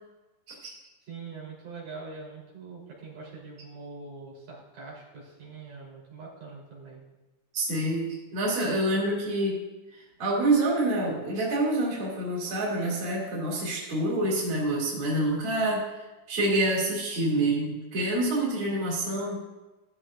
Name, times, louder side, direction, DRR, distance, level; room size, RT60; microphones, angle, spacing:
voice 1, 1.0-7.0, right 4 dB, 80° right, -6 dB, 5.2 m, -43 dB
voice 2, 7.5-9.6 9.9-19.4, right 1 dB, 40° right, -4 dB, 3.6 m, -27 dB
14.5 x 13.5 x 2.6 m, 1.1 s
omnidirectional pair, 3.6 m